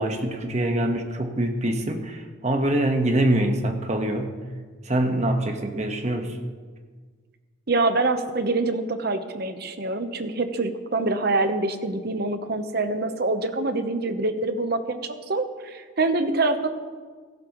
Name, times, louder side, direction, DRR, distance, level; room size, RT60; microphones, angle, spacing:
voice 1, 0.0-4.4 4.8-6.4, right 1 dB, 35° right, 4 dB, 1.3 m, -24 dB
voice 2, 7.7-16.7, right 2 dB, 50° right, 8 dB, 0.9 m, -25 dB
16.5 x 16.0 x 3.1 m, 1.5 s
head